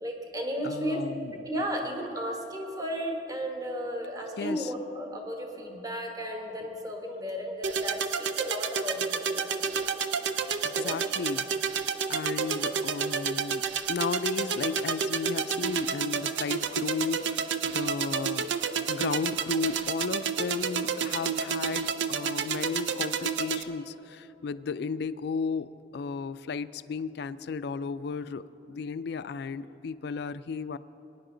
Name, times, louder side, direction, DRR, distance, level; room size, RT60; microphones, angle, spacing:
voice 1, 0.0-1.0 1.5-9.8 10.6-11.0, equal, 20° right, 2 dB, 1.2 m, -34 dB
voice 2, 0.6-1.5 4.4-4.7 10.6-11.8 12.1-18.5 18.9-30.8, left 5 dB, 60° left, 15 dB, 0.3 m, -34 dB
sound 1, 7.6-23.6, right 6 dB, 75° right, 0.5 m, -30 dB
20.5 x 10.0 x 3.8 m, 3.0 s
head